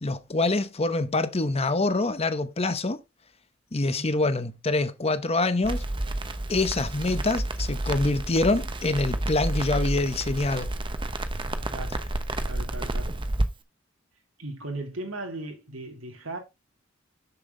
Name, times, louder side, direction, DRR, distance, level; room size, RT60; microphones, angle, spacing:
voice 1, 0.0-3.0 3.7-5.8 6.5-10.7, left 2 dB, 30° left, 0.8 m, -25 dB
Crackle, 5.6-13.5, right 1 dB, 25° right, 0.9 m, -30 dB
voice 2, 11.7-12.0 12.5-13.2 14.4-16.4, right 2 dB, 85° right, 2.6 m, -37 dB
7.2 x 7.0 x 3.8 m
head